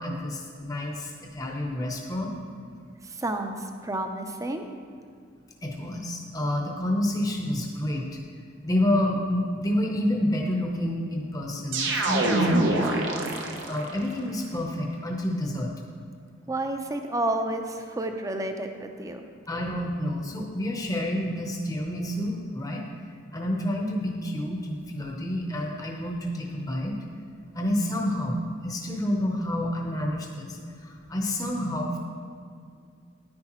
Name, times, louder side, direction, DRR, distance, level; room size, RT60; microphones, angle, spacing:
voice 1, 0.0-2.4 5.6-8.1 8.6-15.7 19.5-22.8 23.3-26.9 27.5-28.4 28.6-32.0, left 1 dB, 20° left, 0 dB, 0.8 m, -29 dB
voice 2, 3.0-4.6 16.5-19.2, right 1 dB, 20° right, 5 dB, 0.6 m, -30 dB
sound 1, 11.7-14.0, right 1 dB, 85° right, 0.9 m, -25 dB
9.6 x 9.5 x 3.0 m, 2.2 s
head